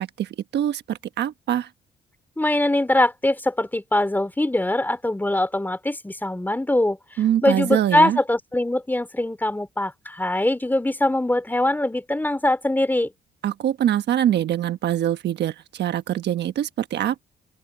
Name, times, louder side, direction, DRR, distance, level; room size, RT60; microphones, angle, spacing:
voice 1, 0.0-1.7 7.2-8.2 13.4-17.2, right 11 dB, 70° right, 1.2 m, -24 dB
voice 2, 2.4-7.0 7.4-13.1, left 1 dB, 10° left, 3.5 m, -22 dB
open air
cardioid pair, 80°, 19 cm